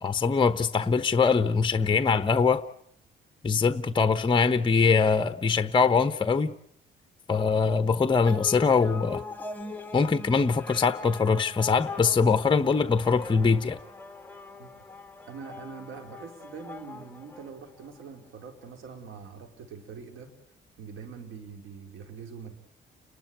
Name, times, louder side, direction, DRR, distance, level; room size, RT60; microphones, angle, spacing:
voice 1, 0.0-2.6 3.4-6.5 7.3-9.2 9.9-13.8, left 5 dB, 25° left, 11 dB, 1.0 m, -23 dB
sound 1, 8.3-18.0, left 3 dB, 10° left, 1.8 m, -42 dB
voice 2, 15.2-20.3 20.8-22.5, right 6 dB, 85° right, 4 dB, 4.4 m, -43 dB
30.0 x 12.0 x 9.3 m, 0.68 s
cardioid pair, 90°, 20 cm